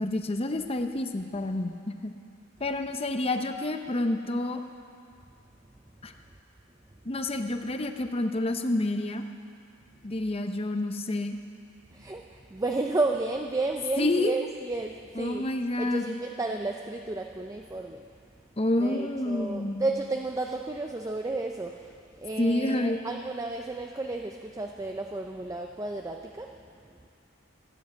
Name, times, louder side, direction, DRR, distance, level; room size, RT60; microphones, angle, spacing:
voice 1, 0.0-2.1 2.6-4.6 6.0-6.1 7.0-9.3 10.0-11.4 14.0-14.3 15.2-16.2 18.6-19.9 22.4-23.0, left 1 dB, 30° left, 6 dB, 0.7 m, -28 dB
voice 2, 11.9-15.5 15.8-18.2 18.8-27.0, right 2 dB, 15° right, 3 dB, 0.5 m, -32 dB
14.5 x 9.9 x 7.9 m, 2.4 s
head